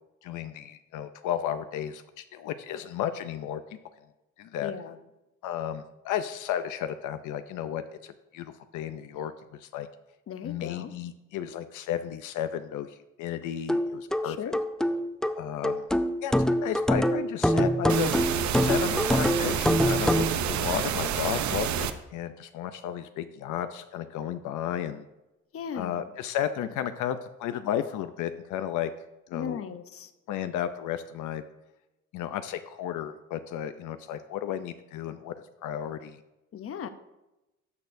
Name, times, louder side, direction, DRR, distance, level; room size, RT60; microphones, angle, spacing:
voice 1, 0.2-3.8 4.4-4.7 5.4-9.9 10.4-14.4 15.4-15.8 16.2-25.0 25.7-28.9 29.3-29.6 30.3-31.4 32.1-35.4 35.6-36.2, left 10 dB, 80° left, 10 dB, 0.6 m, -33 dB
voice 2, 4.6-5.0 10.3-10.9 14.2-14.6 25.5-26.0 29.3-30.1 36.5-36.9, left 7 dB, 50° left, 10 dB, 0.7 m, -37 dB
sound 1, 13.7-20.3, equal, ahead, 0.4 m, -25 dB
sound 2, 17.9-21.9, right 8 dB, 70° right, 0.7 m, -29 dB
12.5 x 6.5 x 2.6 m, 0.96 s
cardioid pair, 90°, 30 cm